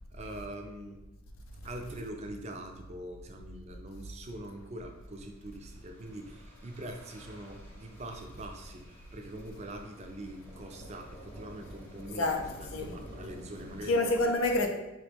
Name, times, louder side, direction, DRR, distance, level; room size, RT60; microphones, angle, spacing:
voice 1, 0.1-1.0 1.6-14.0, right 1 dB, 30° right, 0.4 m, -43 dB
sound 1, 5.0-14.0, equal, 10° left, 0.7 m, -52 dB
voice 2, 12.2-12.9 13.9-14.7, left 2 dB, 70° left, 0.6 m, -28 dB
4.7 x 3.0 x 3.3 m
head